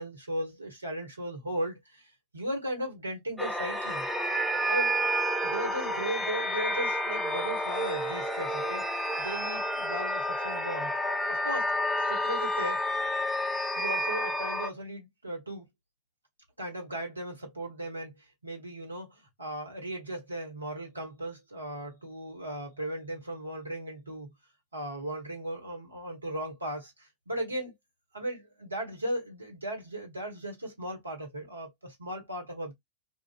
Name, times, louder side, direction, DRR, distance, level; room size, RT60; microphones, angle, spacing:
voice 1, 0.0-4.1 4.7-5.0 5.4-10.9 11.3-11.7 12.0-12.8 13.8-15.6 16.6-24.3 24.7-27.7 28.1-32.7, right 1 dB, 80° right, 1.2 m, -37 dB
sound 1, 3.4-14.7, equal, ahead, 0.5 m, -30 dB
2.6 x 2.4 x 2.4 m
figure-of-eight pair, 90°, 0 cm